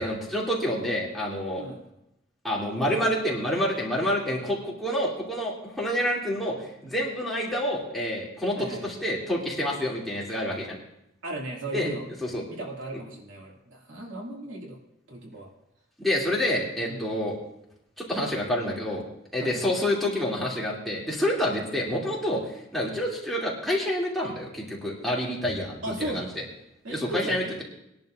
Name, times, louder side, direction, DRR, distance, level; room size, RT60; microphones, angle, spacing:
voice 1, 0.0-1.6 2.4-10.8 11.7-11.9 12.2-12.4 16.0-17.4 18.0-19.0 19.3-22.4 22.7-25.7 26.0-26.3 26.9-27.6, left 1 dB, ahead, -6 dB, 2.8 m, -28 dB
voice 2, 8.6-8.9 11.2-12.1 12.5-14.8 15.1-15.5 16.9-17.1 19.4-19.7 25.8-26.4 26.8-27.5, right 1 dB, 85° right, -2 dB, 2.7 m, -36 dB
21.0 x 11.0 x 2.6 m, 0.83 s
head